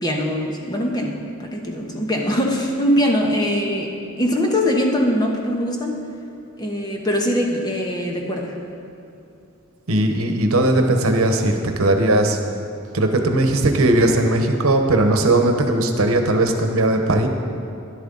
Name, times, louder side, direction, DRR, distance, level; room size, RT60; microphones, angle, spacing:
voice 1, 0.0-6.0 6.6-8.5, equal, 20° left, 0 dB, 1.2 m, -22 dB
voice 2, 9.9-12.4 12.9-17.3, right 2 dB, 80° right, 5 dB, 1.0 m, -18 dB
12.0 x 11.5 x 3.9 m, 2.7 s
head